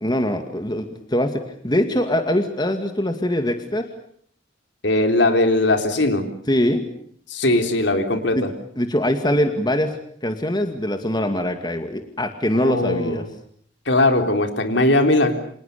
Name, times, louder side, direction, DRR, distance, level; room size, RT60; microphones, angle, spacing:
voice 1, 0.0-3.9 6.5-6.8 8.3-8.4 8.8-9.9 10.2-13.2, left 1 dB, 20° left, 6 dB, 2.2 m, -22 dB
voice 2, 4.8-6.3 7.3-8.5 12.5-13.3 13.9-15.4, left 2 dB, 65° left, 6 dB, 3.8 m, -19 dB
29.5 x 26.0 x 6.8 m, 0.63 s
head